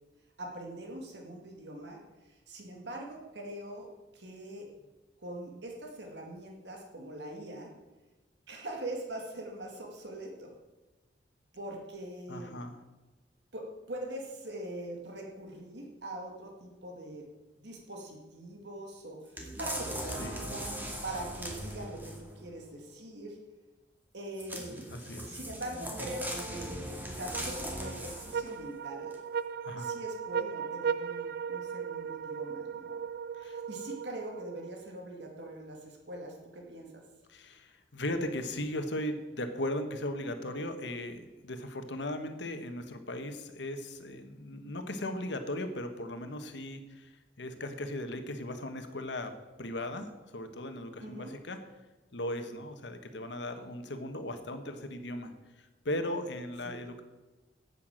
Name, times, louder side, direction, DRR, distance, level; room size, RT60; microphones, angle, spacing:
voice 1, 0.4-4.7 5.2-7.7 8.5-10.5 11.5-12.5 13.5-17.2 17.6-23.4 24.1-24.9 25.2-29.2 29.8-33.0 33.4-37.0 51.0-51.4, right 1 dB, 75° right, 1 dB, 2.0 m, -42 dB
voice 2, 12.3-12.8 20.2-20.5 24.9-25.2 29.6-29.9 33.3-33.6 37.3-47.1 47.4-49.3 49.6-50.1 50.3-51.6 52.1-55.3 55.8-57.0, left 1 dB, 90° left, 7 dB, 1.3 m, -37 dB
sound 1, 19.4-22.4 24.4-28.5 29.1-29.2, equal, 10° right, 2.3 m, -39 dB
sound 2, 27.3-34.9, right 6 dB, 60° right, 0.4 m, -37 dB
9.1 x 8.4 x 7.5 m, 1.1 s
head